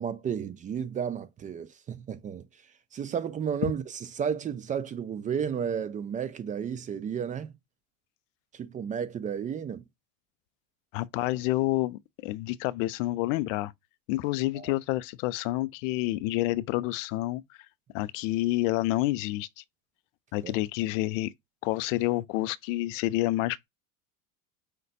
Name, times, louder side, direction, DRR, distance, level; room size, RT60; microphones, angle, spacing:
voice 1, 0.0-2.5 2.9-7.5 8.5-9.8 14.5-14.7 20.4-20.5, right 7 dB, 20° right, 0.4 m, -32 dB
voice 2, 10.9-13.7 14.1-17.4 17.9-19.6 20.3-21.3 21.6-23.7, left 17 dB, 55° left, 0.5 m, -28 dB
5.1 x 2.2 x 4.0 m
hypercardioid pair, 95°, 45 cm